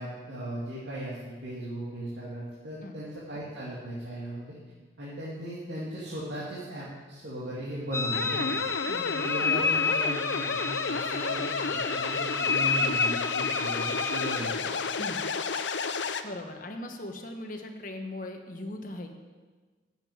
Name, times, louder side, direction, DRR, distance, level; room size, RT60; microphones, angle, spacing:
voice 1, 0.0-4.6 5.0-8.6 9.1-11.4 11.7-14.7, right 1 dB, 70° right, -8 dB, 2.5 m, -37 dB
sound 1, 7.9-14.4, left 4 dB, 15° left, 0.4 m, -30 dB
sound 2, 8.1-16.2, left 5 dB, 80° left, 0.7 m, -31 dB
voice 2, 8.9-9.2 14.9-15.2 16.1-19.1, left 1 dB, 50° left, 4 dB, 1.3 m, -39 dB
9.0 x 7.7 x 8.8 m, 1.4 s
head